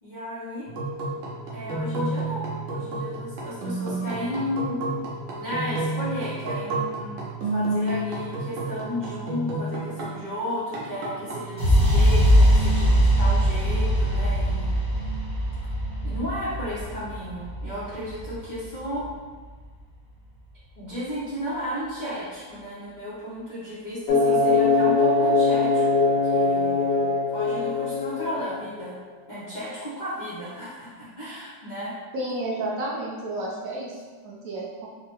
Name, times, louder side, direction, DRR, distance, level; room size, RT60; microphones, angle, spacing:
voice 1, 0.0-0.7 1.5-4.8 5.4-15.1 16.0-19.1 20.8-27.1 27.3-29.0 29.3-31.9, equal, 85° left, -11 dB, 0.4 m, -34 dB
sound 1, 0.7-10.3 10.7-12.0, right 2 dB, 85° right, 1.4 m, -31 dB
sound 2, 11.6-19.5, equal, 20° right, 0.8 m, -22 dB
sound 3, 24.1-28.8, left 3 dB, 70° left, 1.1 m, -21 dB
voice 2, 32.1-34.9, right 1 dB, 60° right, -4 dB, 1.0 m, -31 dB
4.7 x 2.1 x 2.9 m, 1.4 s
omnidirectional pair, 2.1 m